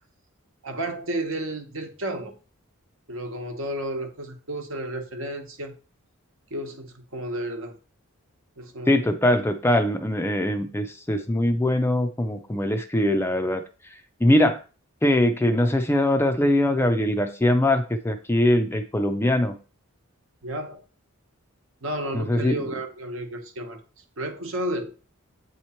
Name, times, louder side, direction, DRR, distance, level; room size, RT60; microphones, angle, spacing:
voice 1, 0.6-2.4 3.1-5.7 6.5-7.8 8.6-9.0 20.4-20.8 21.8-23.8 24.2-24.9, right 1 dB, 65° right, 5 dB, 1.1 m, -32 dB
voice 2, 8.9-13.6 13.9-14.6 15.0-19.6 22.1-22.7, left 1 dB, 10° left, 6 dB, 0.4 m, -22 dB
8.2 x 3.1 x 4.3 m, 0.35 s
head